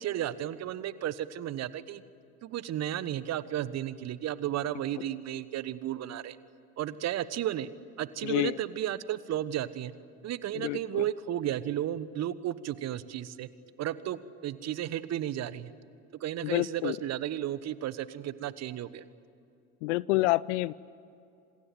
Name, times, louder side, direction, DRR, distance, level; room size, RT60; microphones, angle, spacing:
voice 1, 0.0-2.0 2.4-6.4 6.8-7.7 8.0-9.9 10.2-13.5 13.8-15.7 16.2-19.0, right 12 dB, 40° right, 17 dB, 1.2 m, -33 dB
voice 2, 8.2-8.6 10.5-11.0 16.4-17.0 19.8-20.7, left 20 dB, 55° left, 22 dB, 0.6 m, -28 dB
27.0 x 27.0 x 7.8 m, 2.6 s
figure-of-eight pair, 70°, 42 cm